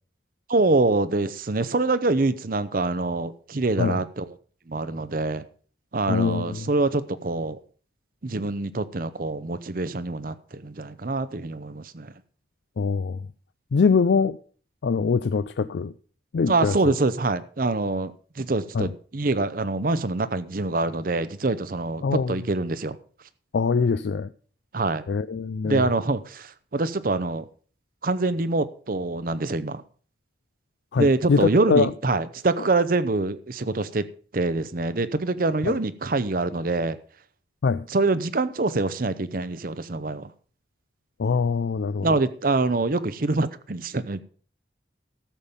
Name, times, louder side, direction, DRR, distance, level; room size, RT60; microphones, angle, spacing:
voice 1, 0.5-4.3 4.7-5.4 5.9-7.6 8.2-12.1 16.5-23.0 24.7-25.0 25.6-27.5 28.0-29.8 31.0-34.1 34.3-37.0 37.9-40.3 42.0-44.2, right 3 dB, 50° right, 0.7 m, -25 dB
voice 2, 6.1-6.7 12.8-13.2 13.7-14.4 14.8-15.9 16.3-16.7 18.7-18.9 22.0-22.3 23.5-24.3 25.1-25.8 30.9-31.9 35.6-35.8 37.6-37.9 41.2-42.1, left 5 dB, 80° left, 0.4 m, -23 dB
13.5 x 7.3 x 5.1 m
head